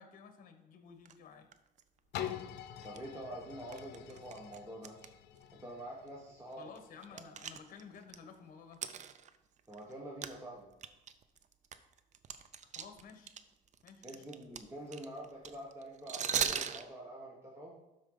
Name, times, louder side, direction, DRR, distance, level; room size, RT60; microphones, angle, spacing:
voice 1, 0.0-1.5 6.6-8.8 12.6-13.3 13.8-14.2, left 6 dB, 55° left, 7 dB, 1.3 m, -53 dB
sound 1, 1.1-1.2 1.5-1.8 2.3-2.4 2.8-3.0 3.7-5.1 5.4-5.5 6.1-6.2 6.5-8.2 8.7-9.9 10.2-10.4 10.7-13.4 13.7-16.8, right 8 dB, 45° right, 0.6 m, -38 dB
sound 2, 2.1-7.9 8.4-8.5, left 10 dB, 75° left, 0.7 m, -46 dB
voice 2, 2.8-5.0 5.5-6.7 7.1-7.2 9.7-10.7 14.0-17.8, right 1 dB, 15° right, -3 dB, 1.3 m, -46 dB
12.0 x 4.7 x 3.9 m, 0.98 s
cardioid pair, 110°, 17 cm